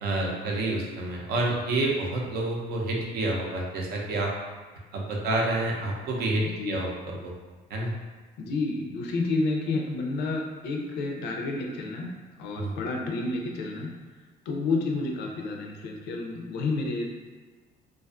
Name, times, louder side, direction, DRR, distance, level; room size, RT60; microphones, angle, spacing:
voice 1, 0.0-4.3 4.9-7.3 7.7-7.9 12.6-12.8, right 2 dB, 70° right, -1 dB, 0.6 m, -28 dB
voice 2, 6.5-6.8 8.4-13.9 14.5-17.2, left 3 dB, 80° left, 1 dB, 0.5 m, -30 dB
2.4 x 2.3 x 2.4 m, 1.4 s
cardioid pair, 110°, 17 cm